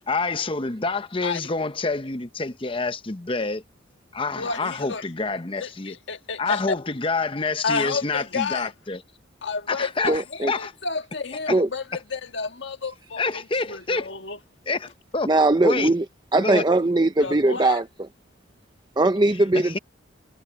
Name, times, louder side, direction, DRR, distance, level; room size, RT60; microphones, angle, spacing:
voice 1, 0.1-3.6 4.1-5.9 6.4-9.0 9.7-10.7 11.5-11.6 13.2-14.1 14.7-15.3 15.6-15.9 16.3-16.6 19.5-19.8, left 3 dB, 25° left, 0.8 m, -27 dB
voice 2, 4.4-5.0 5.6-6.6 7.6-8.7 9.4-13.4 13.7-14.4 17.2-17.8, left 4 dB, 60° left, 1.7 m, -31 dB
voice 3, 10.1-10.5 11.5-11.7 15.3-16.0 16.3-17.8 19.0-19.8, right 2 dB, 20° right, 0.6 m, -20 dB
head